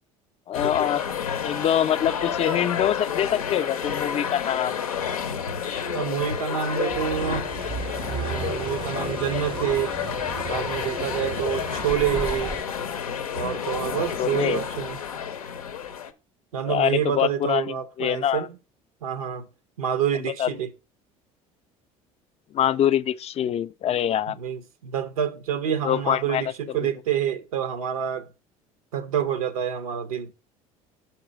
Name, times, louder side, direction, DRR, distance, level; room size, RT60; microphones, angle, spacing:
sound 1, 0.5-16.1, left 7 dB, 90° left, 0.6 m, -30 dB
voice 1, 0.5-1.0 1.4-4.8 14.2-14.6 16.7-18.5 20.4-20.5 22.5-24.4 25.8-26.4, left 10 dB, 35° left, 0.4 m, -24 dB
voice 2, 5.9-7.5 8.1-10.0 10.5-12.5 13.3-15.0 16.5-18.6 19.0-19.5 19.8-20.7 24.3-28.3 28.9-30.3, right 9 dB, 85° right, 0.6 m, -27 dB
sound 2, 6.9-12.6, right 6 dB, 30° right, 0.4 m, -35 dB
6.0 x 4.3 x 5.0 m
hypercardioid pair, 65°, 18 cm